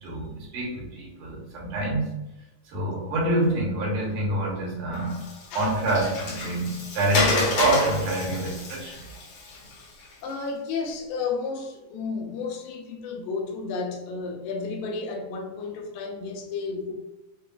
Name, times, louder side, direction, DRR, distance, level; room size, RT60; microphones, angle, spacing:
voice 1, 0.0-2.1 2.7-5.1 5.5-9.0, right 2 dB, 70° right, 2.6 m, -26 dB
Water, 4.9-10.3, left 3 dB, 65° left, 1.9 m, -30 dB
voice 2, 10.2-16.9, left 4 dB, 80° left, 2.3 m, -32 dB
6.4 x 2.5 x 2.4 m
omnidirectional pair, 4.0 m